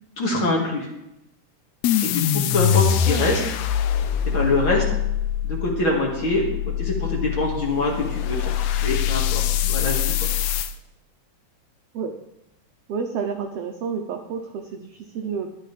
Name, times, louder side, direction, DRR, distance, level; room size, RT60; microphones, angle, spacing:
voice 1, 0.2-0.9 2.0-3.4 4.3-4.9 5.4-6.5 6.8-10.1, left 2 dB, 45° left, -3 dB, 2.4 m, -24 dB
sound 1, 1.8-10.7, left 10 dB, 80° left, 1.7 m, -24 dB
voice 2, 2.9-3.4 11.9-12.1 12.9-15.5, right 6 dB, 80° right, 4 dB, 1.4 m, -30 dB
13.0 x 10.5 x 3.3 m, 0.89 s
omnidirectional pair, 3.7 m